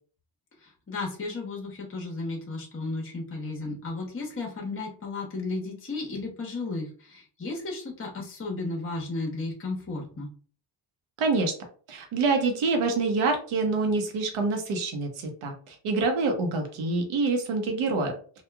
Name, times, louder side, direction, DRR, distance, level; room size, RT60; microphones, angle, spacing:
voice 1, 0.6-10.3, left 3 dB, 25° left, -1 dB, 0.9 m, -34 dB
voice 2, 11.2-11.5 11.9-18.4, right 3 dB, 80° right, 4 dB, 0.9 m, -26 dB
2.9 x 2.3 x 2.2 m, 0.43 s
cardioid pair, 70°, 49 cm